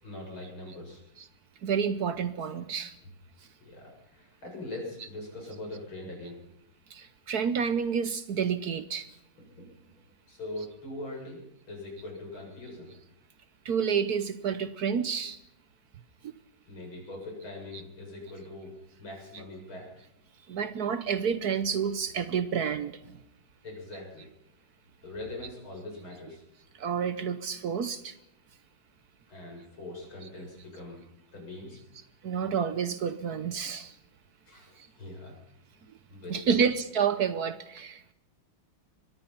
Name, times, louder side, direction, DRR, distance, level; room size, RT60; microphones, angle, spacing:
voice 1, 0.0-1.0 3.6-6.4 9.6-9.7 10.3-11.4 11.7-12.9 16.7-18.7 19.0-19.9 23.6-24.3 25.0-26.4 29.3-31.0 31.3-31.8 34.5-35.3 36.1-36.6, left 2 dB, 90° left, 0 dB, 8.3 m, -42 dB
voice 2, 1.6-2.9 6.9-9.1 13.6-15.4 16.2-16.3 20.5-23.2 26.7-28.2 32.2-34.0 34.8-34.9 36.3-38.1, right 7 dB, 60° right, 13 dB, 1.3 m, -29 dB
23.5 x 20.5 x 5.7 m, 0.84 s
omnidirectional pair, 2.2 m